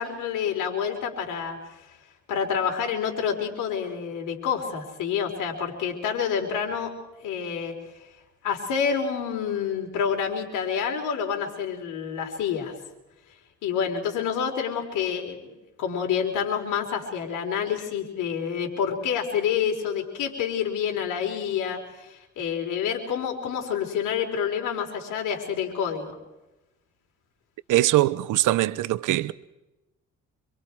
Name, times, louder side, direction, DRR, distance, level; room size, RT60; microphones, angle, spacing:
voice 1, 0.0-2.0 2.3-6.9 7.2-7.8 8.4-12.8 13.6-26.1, left 7 dB, 90° left, 4.4 m, -28 dB
voice 2, 27.7-29.3, right 16 dB, 85° right, 0.9 m, -22 dB
27.0 x 24.0 x 4.7 m
cardioid pair, 90°, 30 cm